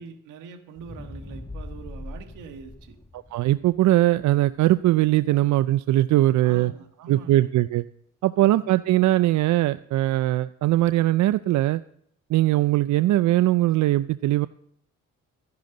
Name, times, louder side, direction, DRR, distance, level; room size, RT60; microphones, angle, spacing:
voice 1, 0.0-3.0 6.4-7.5 8.4-8.7, right 5 dB, 90° right, 5 dB, 1.6 m, -43 dB
sound 1, 0.8-5.0 5.5-5.6, left 2 dB, 10° left, 1.5 m, -41 dB
voice 2, 3.1-6.7 7.1-7.8 8.2-11.8 12.3-14.5, right 15 dB, 70° right, 14 dB, 0.4 m, -21 dB
13.5 x 10.5 x 3.9 m, 0.68 s
cardioid pair, 90°, 30 cm